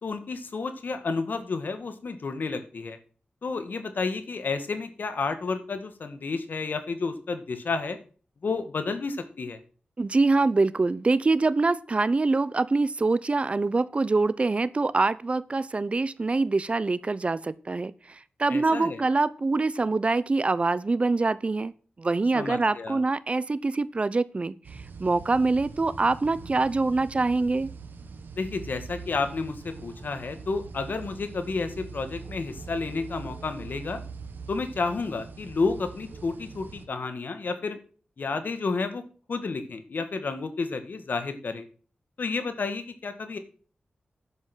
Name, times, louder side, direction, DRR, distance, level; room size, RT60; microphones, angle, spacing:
voice 1, 0.0-3.0 3.4-8.0 8.4-9.6 18.5-19.0 22.3-23.0 28.3-34.0 34.5-37.8 38.2-39.0 39.3-41.7 42.2-43.4, left 4 dB, 65° left, 8 dB, 2.0 m, -31 dB
voice 2, 10.0-21.7 22.0-27.7, right 3 dB, 35° right, 18 dB, 0.6 m, -25 dB
sound 1, 24.6-36.9, right 5 dB, 85° right, 1.4 m, -43 dB
11.0 x 7.9 x 6.3 m, 0.39 s
wide cardioid pair, 90°, 3 cm